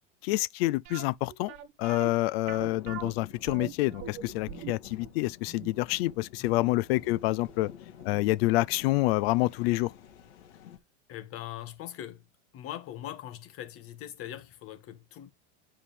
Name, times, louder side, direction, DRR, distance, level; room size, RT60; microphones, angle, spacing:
voice 1, 0.2-1.5 1.8-7.7 8.0-9.9, left 19 dB, 60° left, 0.6 m, -27 dB
sound 1, 0.9-7.7 8.0-8.1 8.7-8.8 9.1-9.2, right 9 dB, 50° right, 2.0 m, -43 dB
sound 2, 2.6-10.8, left 9 dB, 80° left, 2.9 m, -49 dB
voice 2, 6.4-6.8 11.1-12.3 12.5-15.3, left 12 dB, 40° left, 1.9 m, -41 dB
9.9 x 5.3 x 3.5 m
supercardioid pair, 130°, 34 cm